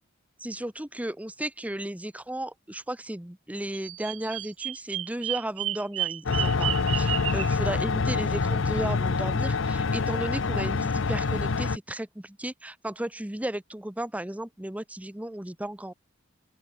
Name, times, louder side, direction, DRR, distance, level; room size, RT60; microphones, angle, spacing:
voice 1, 0.4-15.9, right 1 dB, 5° right, 0.7 m, -34 dB
Bird vocalization bird call bird song, 3.7-7.6, right 14 dB, 85° right, 0.8 m, -32 dB
sound 1, 6.3-11.8, left 4 dB, 70° left, 0.7 m, -26 dB
open air
head